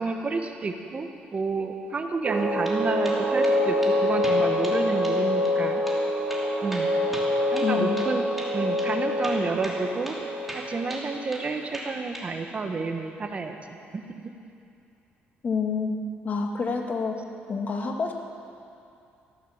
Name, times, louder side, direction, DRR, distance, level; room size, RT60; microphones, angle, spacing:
voice 1, 0.0-5.8 6.6-6.9 7.5-8.2 8.5-10.1 10.5-13.6 13.9-14.0, right 4 dB, 35° right, 5 dB, 1.2 m, -30 dB
sound 1, 2.2-11.2, left 1 dB, 55° right, 2.6 m, -26 dB
sound 2, 2.4-2.8 3.0-3.6 3.8-3.9 4.2-4.8 5.0-5.2 5.4-5.5 5.9-6.0 6.3-8.1 8.4-8.5 8.8-8.9 9.2-9.8 10.0-10.2 10.5-11.5 11.7-12.3, right 1 dB, 5° right, 3.0 m, -38 dB
voice 2, 7.6-8.1 15.4-16.0 16.2-17.2 17.5-18.1, left 5 dB, 45° left, 3 dB, 1.8 m, -28 dB
15.0 x 11.5 x 7.2 m, 2.6 s
cardioid pair, 95°, 4 cm